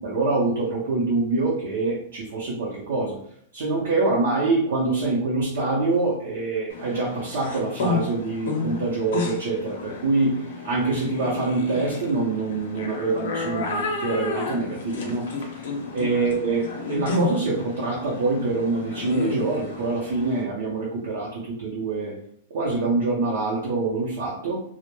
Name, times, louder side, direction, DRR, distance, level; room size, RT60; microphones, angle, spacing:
voice 1, 0.0-3.2 3.5-15.7 15.9-22.1 22.5-24.6, right 3 dB, 65° right, -5 dB, 0.6 m, -25 dB
sound 1, 6.7-20.4, left 4 dB, 75° left, 0.6 m, -31 dB
2.1 x 2.0 x 3.0 m, 0.66 s
supercardioid pair, 165°, 0 cm